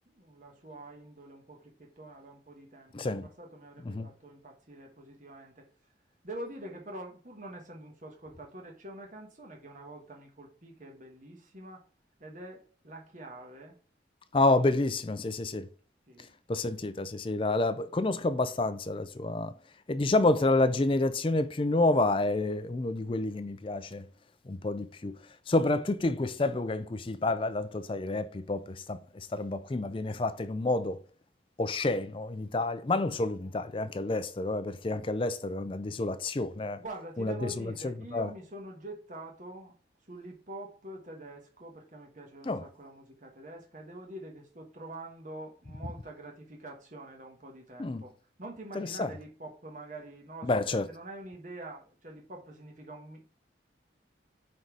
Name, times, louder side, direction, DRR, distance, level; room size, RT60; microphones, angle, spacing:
voice 1, 0.1-5.7 6.2-11.9 12.2-13.8 16.1-16.3 33.4-33.6 36.8-39.7 40.1-53.3, right 1 dB, 45° right, 1.3 m, -45 dB
voice 2, 2.9-3.3 3.9-4.1 14.3-15.7 16.5-19.5 19.9-24.0 24.5-25.2 25.5-31.0 31.6-36.8 37.2-37.3 37.8-38.3 42.5-42.6 47.8-48.0 48.8-49.1 50.4-50.8, left 2 dB, 30° left, 0.4 m, -29 dB
5.3 x 4.0 x 4.6 m
head